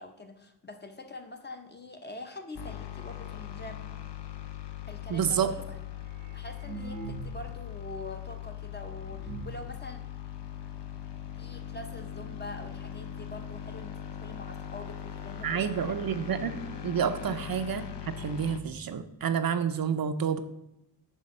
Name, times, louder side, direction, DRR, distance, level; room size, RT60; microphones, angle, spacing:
voice 1, 0.0-4.0 4.9-5.6 6.3-10.0 11.4-16.0 17.2-17.4, left 2 dB, 25° left, 6 dB, 0.7 m, -44 dB
sound 1, 2.5-18.6, left 10 dB, 75° left, 0.8 m, -40 dB
voice 2, 5.1-5.5 15.4-16.6 16.8-20.4, right 7 dB, 55° right, 10 dB, 0.5 m, -29 dB
sound 2, 6.0-7.7 7.9-8.0 8.6-8.7 9.0-9.7 10.4-10.5 10.8-10.9 11.2-11.5 12.3-12.4 12.7-12.8 13.4-13.5 13.8-13.9, right 5 dB, 80° right, 0.9 m, -42 dB
9.5 x 3.4 x 6.4 m, 0.85 s
wide cardioid pair, 175°, 42 cm